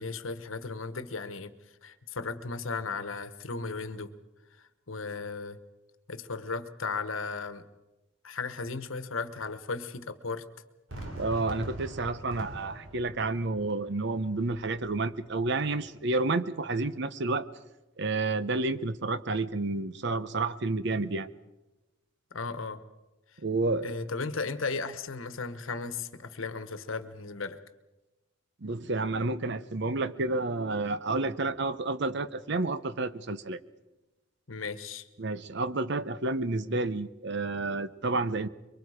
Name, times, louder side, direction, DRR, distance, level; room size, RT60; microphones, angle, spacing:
voice 1, 0.0-1.5 1.8-4.1 4.9-5.6 6.1-7.6 8.2-10.4 22.3-22.8 23.8-27.6 34.5-35.1, left 4 dB, 80° left, 11 dB, 1.2 m, -35 dB
Fireworks, 10.9-15.9, right 1 dB, 75° right, 3.2 m, -44 dB
voice 2, 11.1-17.5 18.0-21.3 23.4-24.0 28.6-33.6 35.2-38.5, right 3 dB, 60° right, 14 dB, 0.8 m, -30 dB
24.0 x 23.5 x 5.0 m, 1.1 s
head